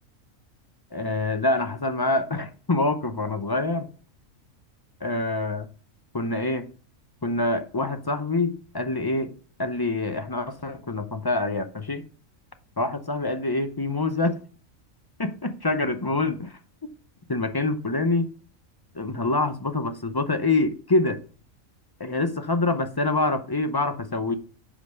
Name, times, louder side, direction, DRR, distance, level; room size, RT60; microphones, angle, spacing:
voice 1, 0.9-3.9 5.0-5.7 6.1-6.7 7.2-9.3 9.6-12.0 12.8-14.4 15.2-16.9 17.3-18.3 18.9-21.2 22.0-24.3, left 2 dB, 30° left, 0.4 m, -26 dB
10.0 x 5.4 x 6.4 m
omnidirectional pair, 1.4 m